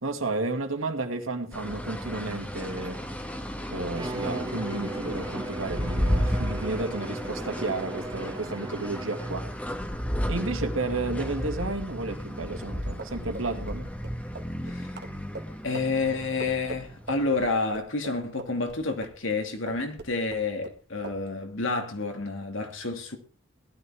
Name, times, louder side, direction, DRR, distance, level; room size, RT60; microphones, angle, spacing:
voice 1, 0.0-3.0 3.7-9.5 10.3-13.9, right 2 dB, 90° right, 2.4 m, -32 dB
sound 1, 1.5-17.5, equal, 5° left, 1.5 m, -33 dB
Bowed string instrument, 3.9-9.6, right 2 dB, 20° right, 0.6 m, -38 dB
sound 2, 13.0-19.4 19.7-20.8 21.0-21.2, right 2 dB, 55° right, 1.9 m, -41 dB
voice 2, 15.6-23.2, left 3 dB, 75° left, 2.7 m, -29 dB
18.0 x 13.0 x 3.6 m
head